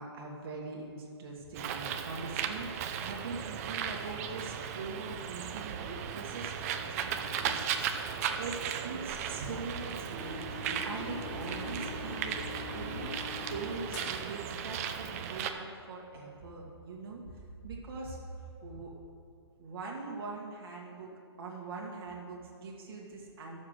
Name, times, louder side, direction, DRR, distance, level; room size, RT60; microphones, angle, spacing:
voice 1, 0.0-7.7 8.4-12.3 12.7-17.2 17.6-18.2 18.6-18.9 19.6-21.1 21.4-23.6, right 3 dB, 60° right, -2 dB, 2.0 m, -42 dB
Bird, 1.5-15.5, right 8 dB, 35° right, 0.7 m, -36 dB
sound 1, 10.2-14.3, left 5 dB, 55° left, 1.4 m, -43 dB
11.0 x 7.3 x 6.6 m, 2.4 s
hypercardioid pair, 150°, 14 cm